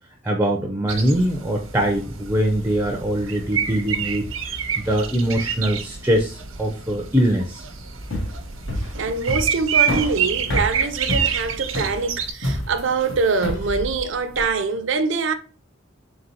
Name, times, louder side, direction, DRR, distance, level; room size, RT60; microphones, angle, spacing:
voice 1, 0.2-4.3 4.8-7.6, right 1 dB, 10° right, 0.5 m, -22 dB
sound 1, 0.9-12.3, right 7 dB, 90° right, 0.9 m, -28 dB
sound 2, 8.0-14.5, left 1 dB, 80° left, 1.5 m, -28 dB
voice 2, 8.9-15.3, right 4 dB, 65° right, 0.5 m, -24 dB
4.0 x 3.9 x 2.8 m
head